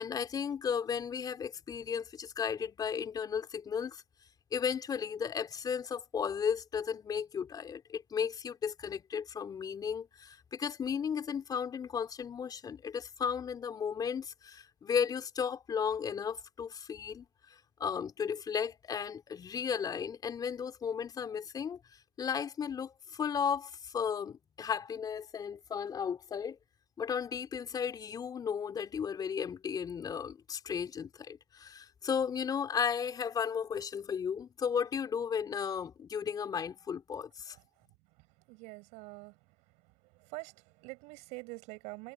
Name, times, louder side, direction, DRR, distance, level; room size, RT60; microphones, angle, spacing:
voice 1, 0.0-4.0 4.5-21.8 22.2-26.6 27.0-37.6, left 7 dB, 30° left, 3.4 m, -35 dB
voice 2, 38.5-39.4 40.1-42.1, right 27 dB, 60° right, 6.3 m, -45 dB
hypercardioid pair, 100°, 14 cm